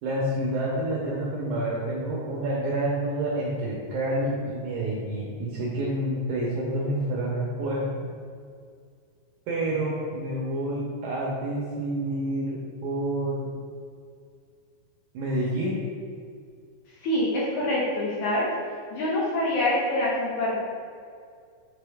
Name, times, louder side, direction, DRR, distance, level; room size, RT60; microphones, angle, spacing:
voice 1, 0.0-8.1 9.5-13.5 15.1-15.8, right 1 dB, 80° right, -4 dB, 1.7 m, -28 dB
voice 2, 17.0-18.5 18.9-20.6, left 1 dB, 75° left, -5 dB, 1.8 m, -25 dB
7.7 x 3.8 x 3.5 m, 2.2 s
omnidirectional pair, 4.5 m